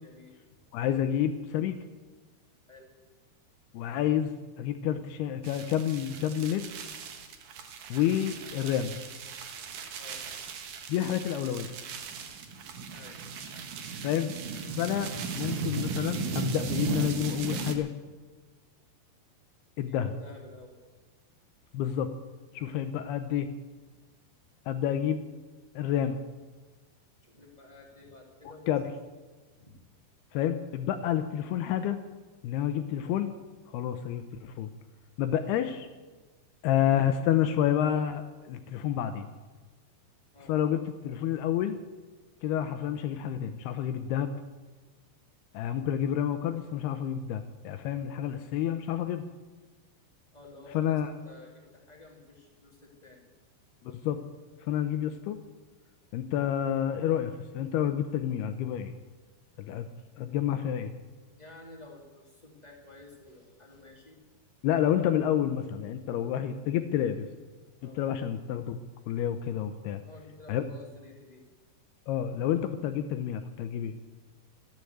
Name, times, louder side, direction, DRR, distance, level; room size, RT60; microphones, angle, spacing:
voice 1, 0.0-0.6 2.7-2.9 10.0-10.2 12.9-13.2 19.8-20.8 27.2-28.7 29.6-29.8 35.4-35.6 40.3-40.5 50.3-53.3 61.4-64.2 67.8-68.0 70.0-71.4, left 2 dB, 20° left, -1 dB, 1.1 m, -51 dB
voice 2, 0.7-1.8 3.7-6.7 7.9-9.0 10.9-11.7 14.0-14.3 14.7-17.9 19.8-20.1 21.7-22.1 22.5-23.5 24.7-25.2 25.8-26.2 28.7-28.9 30.3-32.0 32.4-33.3 33.7-34.7 35.2-35.9 36.6-39.3 40.5-41.8 42.4-44.3 45.5-49.2 50.7-51.1 53.8-54.2 54.6-55.4 56.1-58.9 59.6-59.9 60.2-60.9 64.6-67.3 68.0-68.8 69.1-70.0 70.5-70.6 72.1-74.0, left 10 dB, 80° left, 9 dB, 2.3 m, -29 dB
sound 1, 5.4-17.8, right 4 dB, 60° right, 2.4 m, -36 dB
14.0 x 10.5 x 7.9 m, 1.3 s
omnidirectional pair, 5.3 m